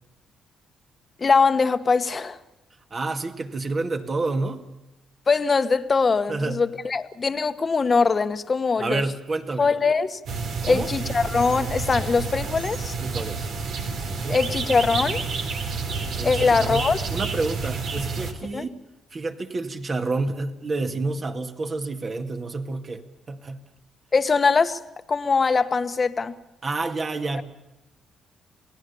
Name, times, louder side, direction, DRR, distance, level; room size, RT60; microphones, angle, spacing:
voice 1, 1.2-2.4 5.3-9.0 9.6-10.2 10.6-12.9 14.3-15.2 16.2-17.0 18.5-18.7 24.1-24.8 25.1-26.3, left 4 dB, 35° left, 10 dB, 1.3 m, -22 dB
voice 2, 2.9-4.7 6.3-6.7 8.8-9.7 10.6-10.9 13.0-13.5 14.1-14.4 16.1-18.7 19.1-23.7 26.6-27.4, right 3 dB, 35° right, 6 dB, 2.1 m, -29 dB
sound 1, 10.3-18.3, right 4 dB, 75° right, 3.7 m, -29 dB
28.5 x 18.5 x 7.0 m, 0.97 s
cardioid pair, 90°, 0 cm